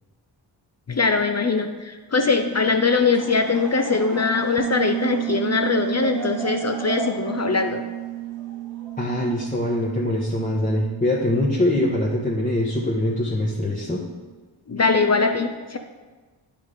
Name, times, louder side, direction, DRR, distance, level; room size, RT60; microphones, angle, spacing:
voice 1, 0.9-7.8 14.7-15.8, left 4 dB, 35° left, 6 dB, 0.6 m, -21 dB
Laughter / Crowd, 2.9-9.4, equal, 85° right, 1.9 m, -37 dB
Bass guitar, 4.6-14.2, right 13 dB, 30° right, 0.6 m, -33 dB
voice 2, 9.0-14.0, left 1 dB, 15° left, -4 dB, 1.2 m, -23 dB
10.5 x 3.7 x 5.1 m, 1.3 s
cardioid pair, 50°, 47 cm